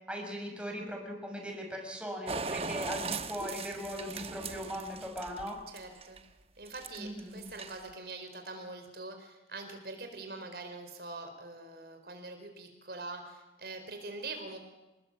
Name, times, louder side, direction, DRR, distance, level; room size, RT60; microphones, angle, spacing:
voice 1, 0.1-5.6 7.0-7.5, equal, 5° right, 1 dB, 5.9 m, -39 dB
sound 1, 2.3-6.2 6.7-7.2 7.5-7.9, right 4 dB, 35° right, 1.1 m, -39 dB
voice 2, 5.7-6.2 6.6-14.6, right 3 dB, 65° right, 5 dB, 4.5 m, -44 dB
28.5 x 20.5 x 8.5 m, 1.0 s
head